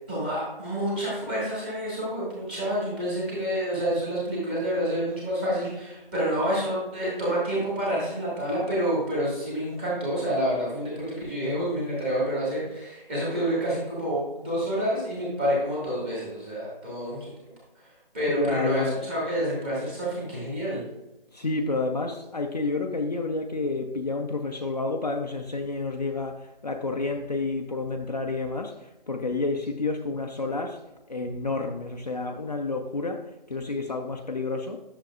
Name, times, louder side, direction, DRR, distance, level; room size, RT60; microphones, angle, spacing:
voice 1, 0.1-17.3 18.1-20.8, equal, 10° right, -7 dB, 1.7 m, -28 dB
voice 2, 18.3-19.0 21.3-30.8 31.1-34.8, left 3 dB, 45° left, 3 dB, 0.6 m, -30 dB
10.5 x 6.6 x 2.4 m, 0.98 s
figure-of-eight pair, 170°, 29 cm